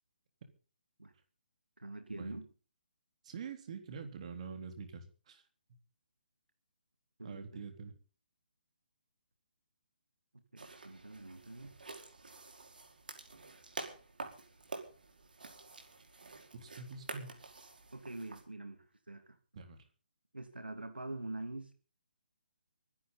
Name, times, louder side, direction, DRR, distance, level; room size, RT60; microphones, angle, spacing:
voice 1, 1.8-2.5 7.2-7.6 10.3-11.8 17.9-19.4 20.3-21.7, right 2 dB, 85° right, 2.4 m, -45 dB
voice 2, 3.2-5.4 7.2-7.9 16.5-17.4 19.6-19.8, right 5 dB, 40° right, 3.9 m, -45 dB
sound 1, 10.6-18.4, right 3 dB, 65° right, 5.0 m, -49 dB
24.5 x 11.5 x 4.1 m
figure-of-eight pair, 140°, 5 cm